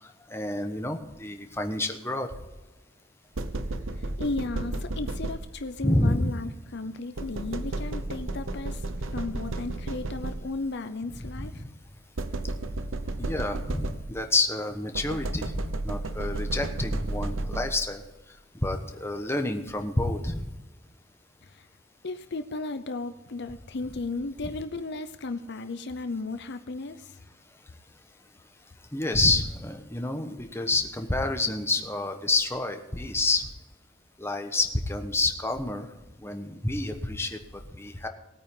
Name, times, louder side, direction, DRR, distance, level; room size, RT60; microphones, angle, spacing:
voice 1, 0.0-2.3 5.8-6.3 11.4-11.7 13.2-18.0 18.6-20.4 28.9-33.5 34.2-35.9 36.2-37.4 37.8-38.1, left 2 dB, 15° left, 5 dB, 1.2 m, -28 dB
sound 1, 3.3-5.8 7.2-10.7 12.2-14.4 14.9-18.0, right 2 dB, 85° right, 0.9 m, -33 dB
voice 2, 4.0-8.8 9.1-11.6 21.4-21.7 22.0-27.2, left 3 dB, 60° left, 9 dB, 0.7 m, -35 dB
19.5 x 9.1 x 3.8 m, 1.1 s
head